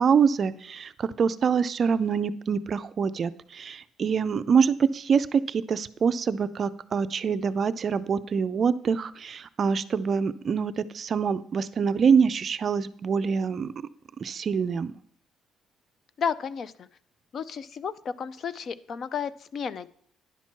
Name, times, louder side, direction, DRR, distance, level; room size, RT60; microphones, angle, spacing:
voice 1, 0.0-13.7 14.2-14.9, right 6 dB, 40° right, 13 dB, 0.4 m, -25 dB
voice 2, 16.2-16.9 17.3-19.9, left 6 dB, 45° left, 16 dB, 0.4 m, -32 dB
10.5 x 5.8 x 4.5 m, 0.63 s
cardioid pair, 150°, 0 cm